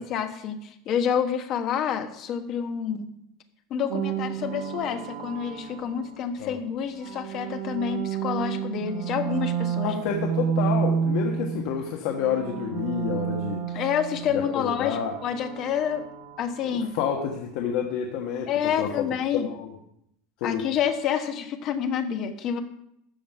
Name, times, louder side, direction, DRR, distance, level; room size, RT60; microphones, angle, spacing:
voice 1, 0.0-3.1 3.7-10.0 13.7-16.0 16.4-16.9 18.5-19.5 20.4-22.6, left 8 dB, 35° left, 7 dB, 1.1 m, -28 dB
sound 1, 3.9-6.3 6.9-11.8 12.1-17.0, right 7 dB, 60° right, 1.8 m, -31 dB
voice 2, 9.8-13.6 14.5-15.1 16.7-18.5 18.8-19.0 19.3-19.7 20.4-20.6, left 8 dB, 55° left, 1 dB, 1.3 m, -29 dB
13.0 x 5.3 x 7.9 m, 0.76 s
supercardioid pair, 170°, 0 cm